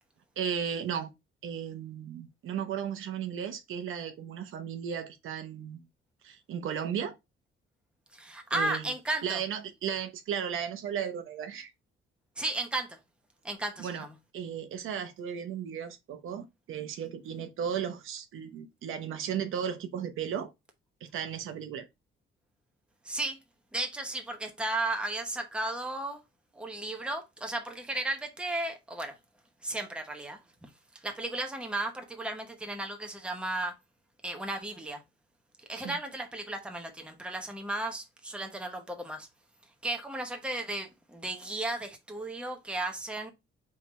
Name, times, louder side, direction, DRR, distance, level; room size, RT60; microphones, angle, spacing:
voice 1, 0.4-1.1 1.4-5.8 6.2-7.2 8.5-8.9 9.2-11.7 13.8-14.0 14.3-20.5 21.0-21.9 35.7-36.0, right 8 dB, 70° right, 0.9 m, -35 dB
voice 2, 8.1-9.4 12.4-13.0 13.4-14.1 23.0-23.4 23.7-26.2 26.5-29.2 29.6-33.7 34.2-35.0 35.6-39.3 39.8-43.3, right 2 dB, 5° right, 0.9 m, -34 dB
4.5 x 3.7 x 3.1 m
cardioid pair, 160°, 21 cm